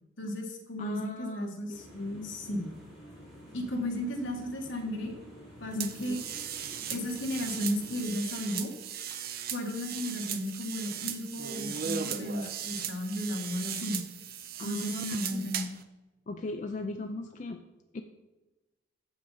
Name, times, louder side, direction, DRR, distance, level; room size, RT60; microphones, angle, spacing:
voice 1, 0.2-1.8 2.2-2.7 3.5-5.1 5.6-6.2 6.9-8.7 9.5-14.0 14.6-15.7, left 1 dB, 70° left, 2 dB, 1.5 m, -34 dB
voice 2, 0.8-2.3 5.7-6.2 14.6-15.0 15.3-15.5 16.3-17.6 17.9-18.0, left 2 dB, 40° left, 5 dB, 0.4 m, -37 dB
sound 1, 1.7-8.1, equal, ahead, 2.8 m, -50 dB
sound 2, 5.8-15.8, right 8 dB, 50° right, 0.6 m, -37 dB
7.1 x 6.3 x 5.4 m, 1.1 s
head